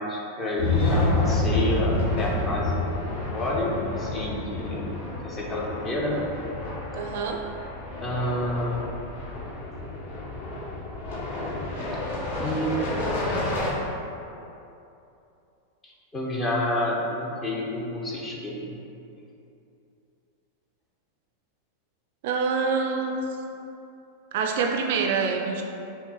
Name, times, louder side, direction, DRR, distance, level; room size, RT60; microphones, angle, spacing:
voice 1, 0.0-4.9 5.2-6.2 8.0-8.8 12.4-12.8 15.8-18.8, left 1 dB, 20° left, -3 dB, 0.8 m, -29 dB
sound 1, 0.6-13.7, left 2 dB, 55° left, 1.1 m, -29 dB
voice 2, 6.9-7.4 22.2-23.2 24.3-25.6, right 5 dB, 50° right, 2 dB, 0.3 m, -26 dB
5.8 x 2.0 x 3.7 m, 2.8 s
figure-of-eight pair, 90°, 0 cm